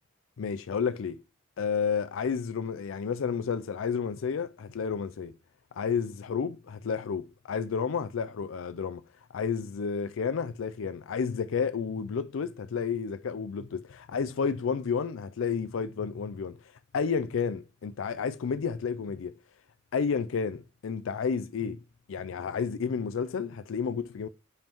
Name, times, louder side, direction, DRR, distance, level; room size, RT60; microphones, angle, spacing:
voice 1, 0.4-1.2 1.6-5.3 5.7-9.0 9.3-19.3 19.9-21.8 22.1-24.3, left 6 dB, 75° left, 0.4 m, -31 dB
10.5 x 5.4 x 3.0 m
head